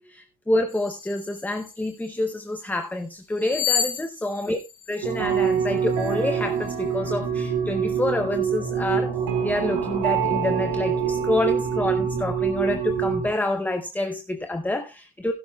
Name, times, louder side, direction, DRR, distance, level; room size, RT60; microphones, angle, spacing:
voice 1, 0.1-4.6 4.9-9.2 9.4-15.3, left 1 dB, 5° left, 0.5 m, -27 dB
sound 1, 0.7-2.2 3.3-5.5 5.9-6.1, left 7 dB, 25° left, 4.2 m, -30 dB
sound 2, 5.0-13.3, right 7 dB, 70° right, 3.2 m, -25 dB
16.0 x 10.5 x 2.2 m
cardioid pair, 140°, 50 cm